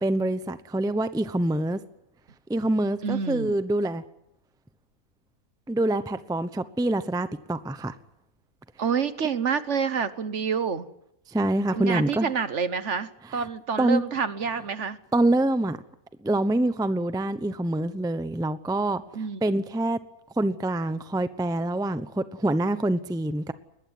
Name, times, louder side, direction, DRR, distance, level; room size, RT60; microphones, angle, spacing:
voice 1, 0.0-1.8 2.5-4.0 5.7-7.9 11.3-12.3 13.3-13.5 13.8-14.0 15.1-15.8 16.2-19.0 19.4-20.0 20.4-23.5, right 1 dB, 5° right, 0.7 m, -25 dB
voice 2, 3.0-3.6 8.8-10.9 11.7-15.0 19.1-19.4, right 6 dB, 55° right, 1.3 m, -28 dB
22.0 x 19.0 x 9.5 m
omnidirectional pair, 1.6 m